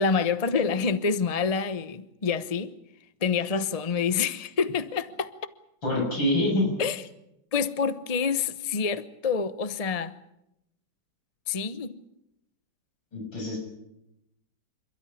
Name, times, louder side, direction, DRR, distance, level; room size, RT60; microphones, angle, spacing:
voice 1, 0.0-2.7 3.2-5.3 6.8-7.0 7.5-10.1 11.5-12.0, left 5 dB, 30° left, 0.7 m, -27 dB
voice 2, 5.8-6.7 13.1-13.7, left 1 dB, 90° left, 8.0 m, -25 dB
28.5 x 13.0 x 9.9 m
omnidirectional pair, 2.1 m